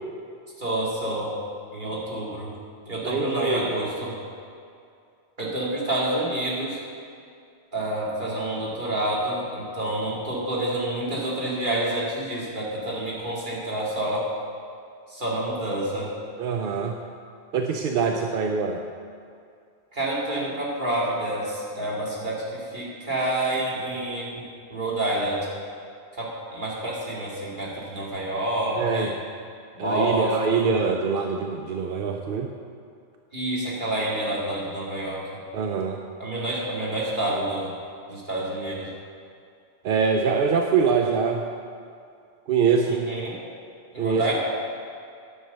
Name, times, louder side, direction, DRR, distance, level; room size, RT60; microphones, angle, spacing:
voice 1, 0.6-1.3 1.7-2.5 2.9-4.2 5.4-6.8 7.7-14.3 15.1-16.1 19.9-24.3 24.7-25.5 26.2-29.1 29.7-30.7 33.3-35.2 36.2-37.7 38.1-38.9 42.9-43.4 43.9-44.3, right 1 dB, 40° right, -6 dB, 2.6 m, -28 dB
voice 2, 3.0-3.7 16.4-17.0 17.5-18.8 28.8-29.1 29.8-32.5 35.5-36.0 39.8-41.4 42.5-43.0 44.0-44.3, right 5 dB, 55° right, 3 dB, 0.7 m, -24 dB
11.0 x 6.5 x 6.6 m, 2.4 s
omnidirectional pair, 1.3 m